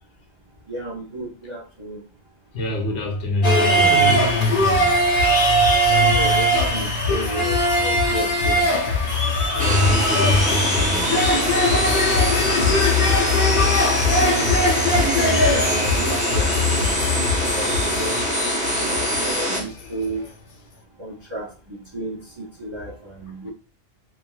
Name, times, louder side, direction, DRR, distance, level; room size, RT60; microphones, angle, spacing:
voice 1, 0.7-2.0 5.9-8.7 12.6-13.1 14.1-14.6 14.9-18.2 18.7-20.2 21.0-23.5, right 1 dB, 40° right, 0.4 m, -32 dB
voice 2, 2.5-4.2 9.5-11.2, left 1 dB, 85° left, 1.1 m, -23 dB
sound 1, 3.4-19.8 20.1-20.2, left 1 dB, 60° left, 0.8 m, -20 dB
sound 2, 9.6-19.6, equal, 5° right, 0.8 m, -23 dB
3.0 x 2.4 x 2.3 m
omnidirectional pair, 1.2 m